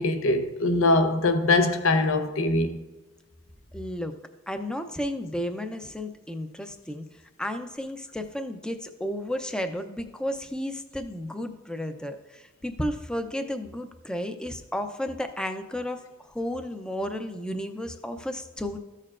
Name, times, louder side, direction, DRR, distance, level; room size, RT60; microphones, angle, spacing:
voice 1, 0.0-2.8, left 2 dB, 70° left, 0.7 m, -22 dB
voice 2, 3.7-4.1 4.5-7.0 7.4-18.8, equal, 5° left, 0.5 m, -33 dB
14.0 x 6.6 x 2.5 m
head